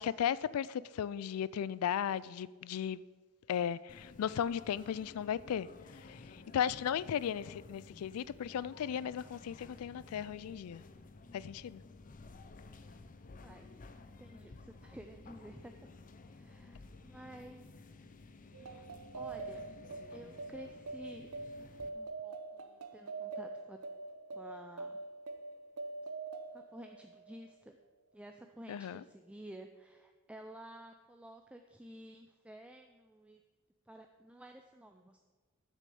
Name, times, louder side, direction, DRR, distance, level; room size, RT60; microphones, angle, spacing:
voice 1, 0.0-3.0 3.5-5.7 5.9-10.8 11.3-11.8 28.7-29.0, left 9 dB, 90° left, 0.3 m, -36 dB
sound 1, 3.9-21.9, left 3 dB, 40° left, 0.6 m, -54 dB
voice 2, 13.4-13.8 14.2-15.9 16.3-18.1 18.5-18.8 19.1-19.6 20.1-21.3 21.9-23.8 24.3-25.0 26.5-27.8 28.1-33.4 33.9-35.2, right 1 dB, 5° right, 0.4 m, -52 dB
sound 2, 18.5-27.5, right 3 dB, 85° right, 0.7 m, -44 dB
8.4 x 6.5 x 6.9 m
head